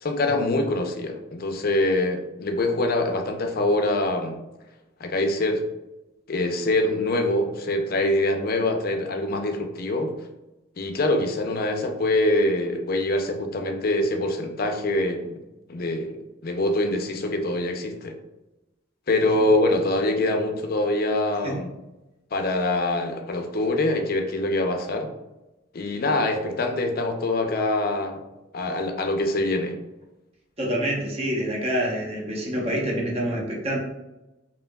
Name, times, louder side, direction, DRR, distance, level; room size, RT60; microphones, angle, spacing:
voice 1, 0.0-4.4 5.0-5.6 6.3-10.2 10.8-15.3 15.7-18.2 19.1-21.7 22.3-25.1 25.7-28.2 28.5-29.8, left 2 dB, 50° left, 4 dB, 0.5 m, -24 dB
voice 2, 30.6-33.8, equal, 30° right, -2 dB, 0.9 m, -26 dB
5.2 x 2.9 x 2.3 m, 0.98 s
head